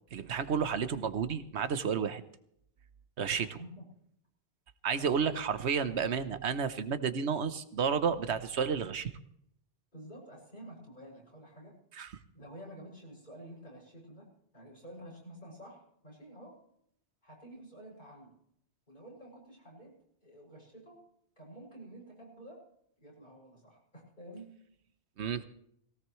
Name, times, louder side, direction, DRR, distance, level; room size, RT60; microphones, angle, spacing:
voice 1, 0.1-2.2 3.2-3.6 4.8-9.1 12.0-12.1 25.2-25.4, right 6 dB, 90° right, 12 dB, 1.2 m, -31 dB
voice 2, 3.4-3.9 5.0-5.3 9.9-11.8 12.3-16.6 17.2-18.4 18.9-21.0 21.4-22.7 23.0-24.6, right 1 dB, 45° left, -2 dB, 7.0 m, -50 dB
19.5 x 17.5 x 3.2 m, 0.70 s
omnidirectional pair, 1.1 m